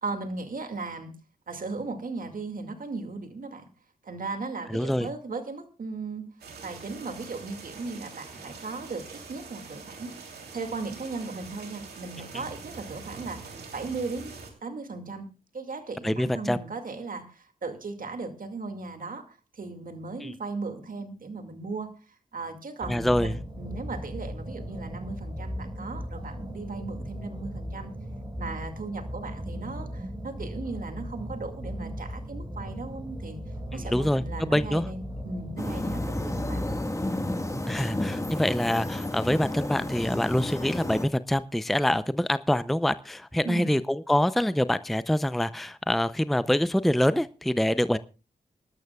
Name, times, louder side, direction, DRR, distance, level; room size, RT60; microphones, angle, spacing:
voice 1, 0.0-1.1 1.5-3.7 4.0-6.2 6.6-10.1 10.5-14.3 14.6-15.3 15.5-21.9 22.3-27.9 28.4-33.4 33.7-36.2 36.5-36.7 43.4-43.7, right 3 dB, 60° right, 7 dB, 2.2 m, -37 dB
voice 2, 4.7-5.1 16.0-16.6 20.2-20.3 22.9-23.3 33.9-34.2 34.5-34.8 37.7-48.0, left 1 dB, ahead, 14 dB, 0.5 m, -25 dB
sound 1, 6.4-14.5, right 4 dB, 85° right, 3.2 m, -44 dB
sound 2, 22.8-36.9, equal, 25° right, 5.3 m, -37 dB
sound 3, 35.6-41.1, left 1 dB, 20° left, 1.6 m, -31 dB
25.0 x 12.0 x 2.3 m, 0.32 s
cardioid pair, 50°, 16 cm